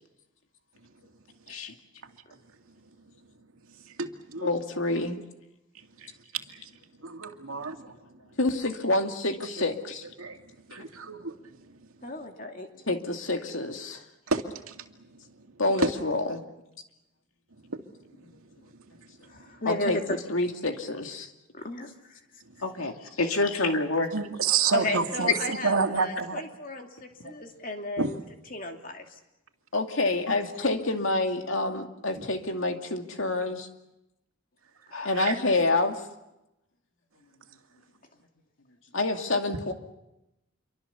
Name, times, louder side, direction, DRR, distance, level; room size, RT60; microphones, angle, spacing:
voice 1, 3.9-4.5 6.0-6.7 7.0-8.1 10.2-11.8 12.1-12.2 14.3-15.5 15.8-15.9 17.6-17.8 18.3-19.1 22.5-22.6 24.1-26.4 27.2-27.3 28.0-28.2 32.1-32.2 34.9-35.4, right 5 dB, 90° right, 4 dB, 2.3 m, -31 dB
voice 2, 4.4-5.2 8.4-10.1 12.9-14.0 15.6-16.4 18.2-18.4 19.7-21.3 29.7-33.7 35.0-36.0 38.9-39.7, left 2 dB, 70° left, 5 dB, 2.3 m, -27 dB
voice 3, 12.0-13.0 19.3-20.2 21.5-22.2 24.7-28.2 28.5-29.2, left 2 dB, 40° left, 3 dB, 2.7 m, -34 dB
voice 4, 22.6-24.1 25.3-25.4 34.9-35.1, left 3 dB, 90° left, 4 dB, 2.2 m, -27 dB
27.5 x 24.0 x 7.0 m, 0.94 s
head